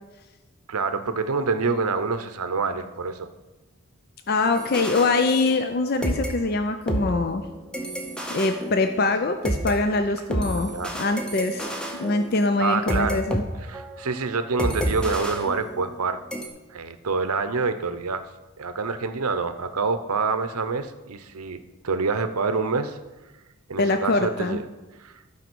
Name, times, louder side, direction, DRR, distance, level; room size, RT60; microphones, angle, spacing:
voice 1, 0.7-3.3 10.7-10.9 12.6-13.2 13.7-16.2 16.7-18.3 18.6-21.6 21.8-23.0 23.7-24.6 25.0-25.2, right 4 dB, 90° right, 10 dB, 0.7 m, -26 dB
voice 2, 4.3-7.5 8.3-13.4 23.8-24.6, left 3 dB, 45° left, 7 dB, 0.5 m, -24 dB
sound 1, 4.5-5.8 6.0-9.7 10.3-13.4 13.7-14.0 14.6-16.0 16.3-16.5, right 1 dB, 5° left, 0.8 m, -30 dB
12.0 x 5.0 x 6.1 m, 1.1 s
head